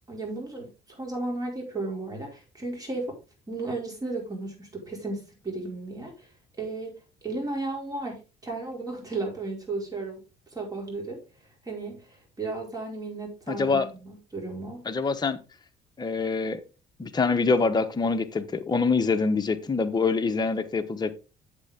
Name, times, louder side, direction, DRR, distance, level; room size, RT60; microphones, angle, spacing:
voice 1, 0.1-3.2 3.5-6.3 6.6-10.2 10.5-11.2 11.6-14.8, right 2 dB, 20° right, 4.8 m, -34 dB
voice 2, 13.5-13.9 14.9-15.4 16.0-16.6 17.0-21.1, left 4 dB, 25° left, 1.1 m, -25 dB
8.1 x 7.8 x 3.7 m
cardioid pair, 110°, 17 cm